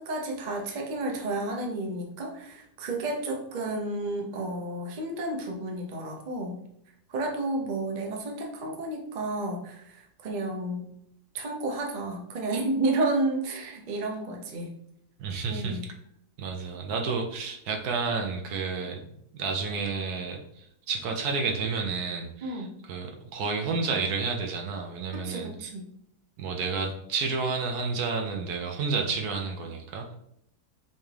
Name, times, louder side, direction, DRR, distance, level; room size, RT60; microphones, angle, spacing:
voice 1, 0.0-6.6 7.1-10.9 11.3-14.7 15.5-15.9 22.4-22.7 25.1-25.9, right 2 dB, 40° right, 1 dB, 0.6 m, -31 dB
voice 2, 15.2-15.8 16.4-25.7 26.4-30.2, right 4 dB, 75° right, 3 dB, 1.2 m, -31 dB
4.4 x 3.5 x 3.3 m, 0.74 s
omnidirectional pair, 1.8 m